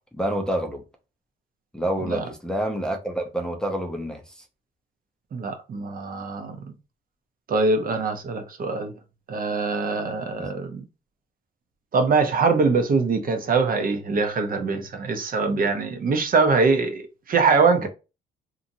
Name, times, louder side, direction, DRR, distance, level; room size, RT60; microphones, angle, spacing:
voice 1, 0.1-0.8 1.7-4.3 10.4-10.5 17.8-17.9, right 1 dB, 5° left, 0.6 m, -28 dB
voice 2, 5.3-6.6 7.5-8.9 9.3-10.8 11.9-17.9, right 4 dB, 45° right, 0.7 m, -23 dB
2.8 x 2.6 x 2.6 m
cardioid pair, 90°, 20 cm